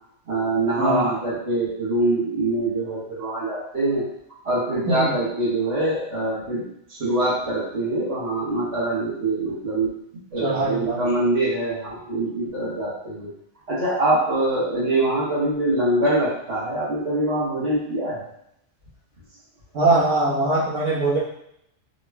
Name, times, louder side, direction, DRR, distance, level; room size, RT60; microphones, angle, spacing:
voice 1, 0.3-4.1 4.4-9.9 10.3-13.3 13.7-18.2, right 1 dB, 55° right, -9 dB, 1.5 m, -24 dB
voice 2, 0.8-1.1 4.8-5.1 10.4-11.0 19.7-21.2, right 2 dB, 80° right, -10 dB, 1.5 m, -21 dB
3.8 x 2.9 x 2.3 m, 0.75 s
omnidirectional pair, 1.3 m